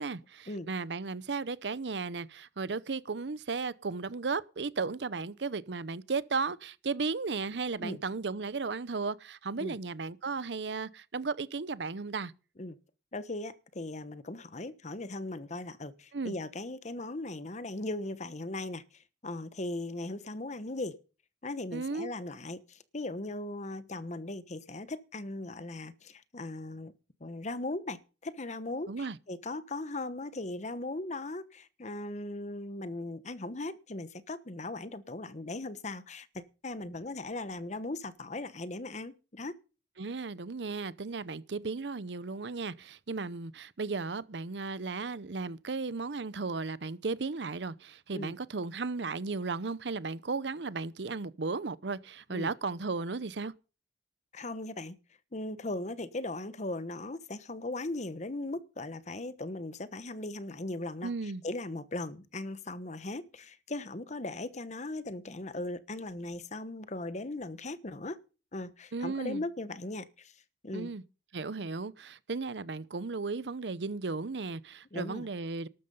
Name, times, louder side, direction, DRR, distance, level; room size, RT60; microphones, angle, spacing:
voice 1, 0.0-12.3 16.1-16.3 21.7-22.1 28.9-29.2 40.0-53.5 61.0-61.4 68.9-69.4 70.7-71.0 71.3-75.7, right 4 dB, 80° right, 0.7 m, -35 dB
voice 2, 13.1-21.0 21.4-26.9 27.2-39.5 48.1-48.3 52.3-52.5 54.3-54.9 55.3-68.2 68.5-70.3 70.6-70.9 74.9-75.3, left 2 dB, 40° left, 1.1 m, -38 dB
13.0 x 12.5 x 5.4 m
head